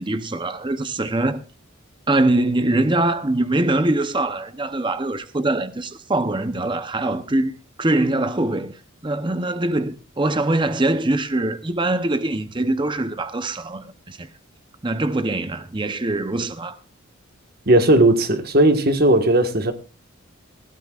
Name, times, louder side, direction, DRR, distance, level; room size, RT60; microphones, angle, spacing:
voice 1, 0.0-1.4 2.1-7.5 7.8-14.3 14.8-16.8, right 2 dB, 25° right, 0.7 m, -23 dB
voice 2, 17.7-19.7, right 1 dB, 45° right, 1.5 m, -16 dB
19.5 x 15.0 x 2.4 m
head